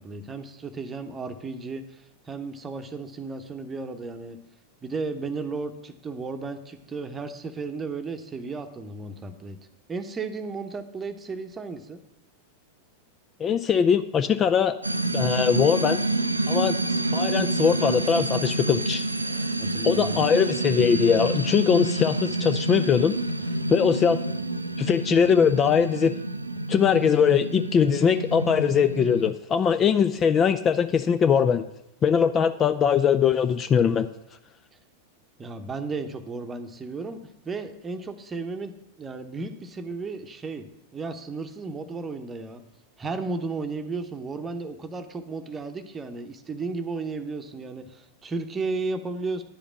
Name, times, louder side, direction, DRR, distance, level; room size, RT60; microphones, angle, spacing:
voice 1, 0.0-4.4 4.8-9.6 9.9-12.0 19.6-20.2 35.4-37.2 37.4-38.7 39.0-40.7 40.9-42.6 43.0-49.4, right 3 dB, 20° right, 9 dB, 0.9 m, -34 dB
voice 2, 13.4-14.8 15.1-16.0 16.5-16.8 17.1-19.0 19.8-23.1 23.7-24.2 24.8-26.1 26.7-31.6 32.0-34.1, left 7 dB, 25° left, 11 dB, 0.4 m, -21 dB
sound 1, 14.8-29.3, right 2 dB, 85° right, 0.4 m, -28 dB
10.5 x 5.1 x 7.1 m, 0.83 s
figure-of-eight pair, 90°, 0 cm